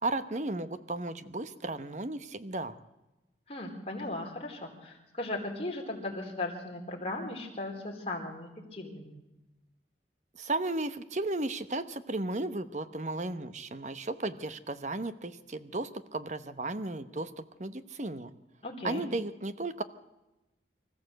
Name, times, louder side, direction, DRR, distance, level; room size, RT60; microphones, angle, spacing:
voice 1, 0.0-2.7 10.4-18.3 18.8-19.8, right 2 dB, 40° right, 11 dB, 1.0 m, -34 dB
voice 2, 3.5-9.1 18.6-19.1, left 2 dB, 35° left, 0 dB, 4.1 m, -37 dB
24.5 x 14.5 x 7.9 m, 1.0 s
head